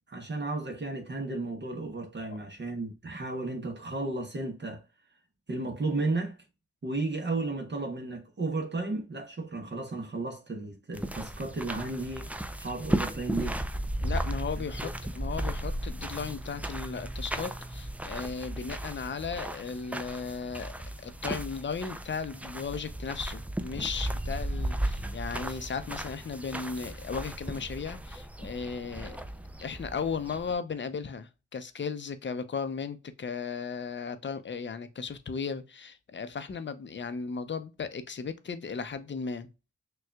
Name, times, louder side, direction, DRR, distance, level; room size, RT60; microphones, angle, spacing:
voice 1, 0.0-4.8 5.5-6.4 6.8-12.3 12.6-13.6 14.6-14.9, right 2 dB, 35° right, 1.0 m, -34 dB
sound 1, 10.9-30.5, right 1 dB, 5° right, 0.4 m, -35 dB
voice 2, 14.0-29.2 29.6-39.5, left 5 dB, 40° left, 0.6 m, -36 dB
6.3 x 2.3 x 2.3 m
cardioid pair, 55°, 30 cm